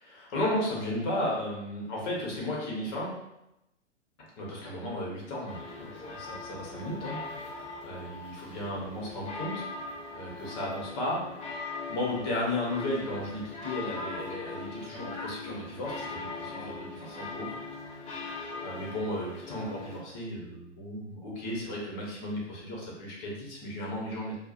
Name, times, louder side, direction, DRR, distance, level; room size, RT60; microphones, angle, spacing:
voice 1, 0.0-3.1 4.4-11.5 11.9-17.6 18.0-18.2 18.6-24.4, left 1 dB, 40° left, -3 dB, 1.4 m, -35 dB
sound 1, 5.5-20.0, left 3 dB, 20° left, 0.8 m, -40 dB
4.6 x 2.4 x 2.6 m, 0.88 s
hypercardioid pair, 115°, 37 cm